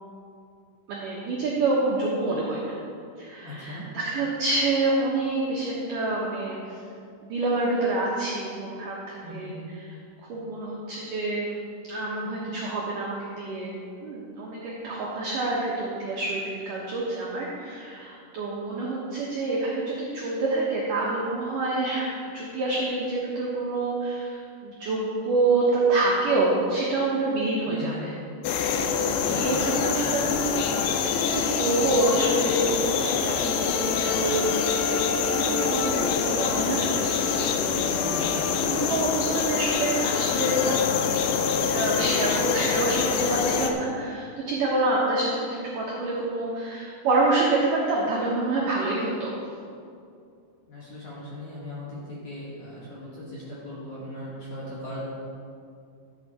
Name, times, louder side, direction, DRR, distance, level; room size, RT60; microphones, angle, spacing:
voice 1, 0.9-2.8 3.2-6.8 7.2-9.9 10.3-11.6 11.9-28.1 28.8-34.6 35.0-38.3 38.6-49.3, right 2 dB, 75° right, -5 dB, 1.9 m, -27 dB
voice 2, 3.4-3.9 9.2-9.5 27.7-28.1 29.2-29.7 37.9-38.4 50.7-55.0, left 1 dB, 60° left, -7 dB, 2.1 m, -39 dB
sound 1, 28.4-43.7, left 6 dB, 85° left, 2.7 m, -25 dB
13.0 x 8.2 x 4.2 m, 2.4 s
omnidirectional pair, 5.6 m